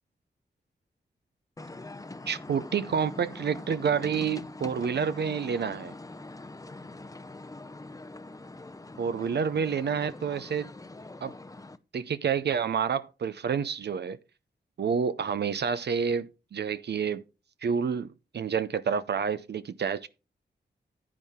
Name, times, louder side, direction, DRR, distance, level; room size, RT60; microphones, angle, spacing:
sound 1, 1.6-11.8, left 2 dB, 20° left, 0.6 m, -43 dB
voice 1, 2.3-5.9 9.0-10.7 11.2-11.3 11.9-14.2 14.8-17.2 17.6-18.1 18.3-20.1, right 6 dB, 65° right, 0.6 m, -29 dB
9.7 x 9.3 x 3.6 m
cardioid pair, 65°, 19 cm